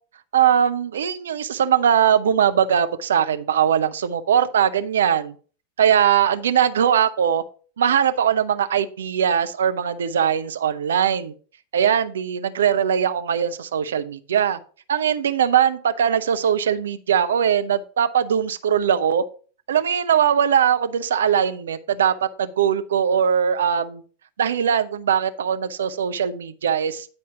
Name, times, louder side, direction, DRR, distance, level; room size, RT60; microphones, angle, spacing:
voice 1, 0.3-5.3 5.8-7.4 7.8-11.3 11.7-14.6 14.9-19.2 19.7-22.1 22.4-24.0 24.4-27.1, right 8 dB, 65° right, 11 dB, 0.6 m, -20 dB
9.8 x 4.3 x 4.7 m, 0.40 s
figure-of-eight pair, 90°, 0 cm